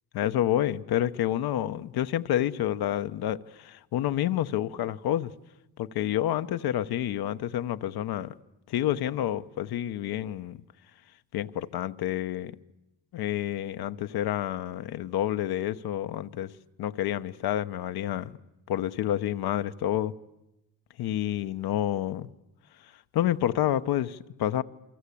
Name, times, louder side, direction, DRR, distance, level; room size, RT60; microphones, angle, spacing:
voice 1, 0.1-5.3 5.8-8.3 8.7-10.6 11.3-12.5 13.1-16.5 16.8-18.3 18.7-20.1 21.0-22.3 23.1-24.6, left 12 dB, 70° left, 1.0 m, -29 dB
28.0 x 25.0 x 8.5 m
cardioid pair, 110°, 39 cm